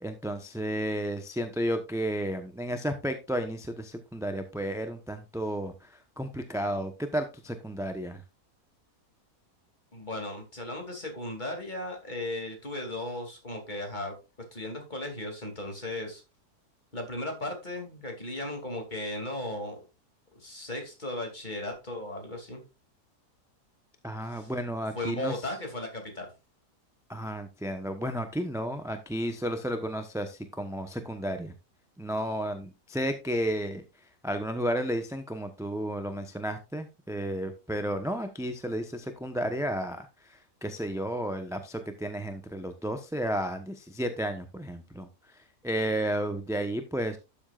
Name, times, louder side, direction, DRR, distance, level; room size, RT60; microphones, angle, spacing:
voice 1, 0.0-8.2 24.0-25.3 27.1-31.5 32.0-33.8 34.2-45.1 45.6-47.2, equal, 5° right, 7 dB, 0.6 m, -32 dB
voice 2, 9.9-14.2 14.5-16.2 16.9-19.8 20.4-22.6 24.3-24.5 25.0-26.3, left 1 dB, 30° left, 3 dB, 2.7 m, -36 dB
12.5 x 7.2 x 2.4 m, 0.27 s
omnidirectional pair, 1.7 m